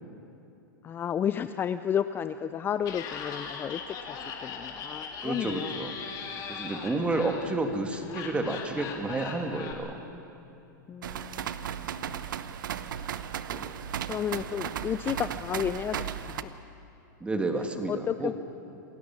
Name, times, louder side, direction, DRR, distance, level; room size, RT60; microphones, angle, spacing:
voice 1, 0.8-5.8 10.9-11.5 12.0-12.3 14.1-16.6 17.6-18.3, left 9 dB, 20° left, 12 dB, 0.5 m, -32 dB
Laughter, 2.8-9.7, left 6 dB, 35° left, 3.2 m, -39 dB
voice 2, 5.2-6.0 6.5-10.0 13.5-13.8 14.5-14.6 17.2-18.3, right 2 dB, 10° right, 5 dB, 1.9 m, -31 dB
sound 1, 11.0-16.4, right 9 dB, 75° right, 1.0 m, -35 dB
28.0 x 17.0 x 7.4 m, 3.0 s
hypercardioid pair, 130°, 11 cm